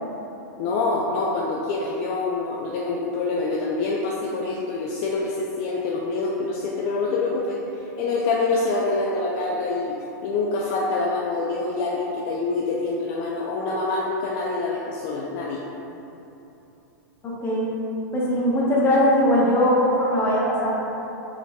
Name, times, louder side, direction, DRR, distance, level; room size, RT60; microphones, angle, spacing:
voice 1, 0.6-15.6, left 3 dB, 50° left, -3 dB, 0.4 m, -26 dB
voice 2, 17.2-17.7 18.1-20.7, equal, 25° left, -5 dB, 0.9 m, -20 dB
4.3 x 3.3 x 2.3 m, 3.0 s
hypercardioid pair, 115°, 10 cm